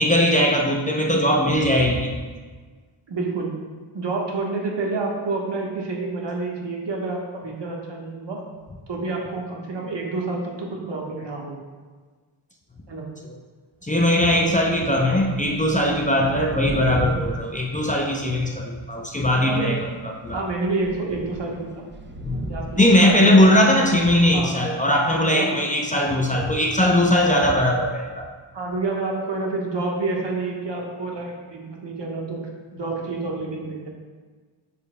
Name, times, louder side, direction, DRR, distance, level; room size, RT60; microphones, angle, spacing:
voice 1, 0.0-2.2 13.8-20.4 22.2-22.4 22.8-28.3, left 1 dB, 15° left, -1 dB, 0.6 m, -19 dB
voice 2, 3.1-3.5 3.9-8.4 8.9-11.6 12.9-13.1 19.4-19.7 20.3-21.8 22.5-23.5 24.3-24.5 25.3-25.6 28.5-32.4 32.7-33.9, right 3 dB, 60° right, -1 dB, 1.3 m, -28 dB
Thunder / Rain, 14.0-14.2 14.4-18.6 19.3-19.7 20.2-20.3 20.6-24.3, right 1 dB, 25° right, 0.6 m, -37 dB
7.1 x 6.5 x 2.2 m, 1.4 s
cardioid pair, 70°, 48 cm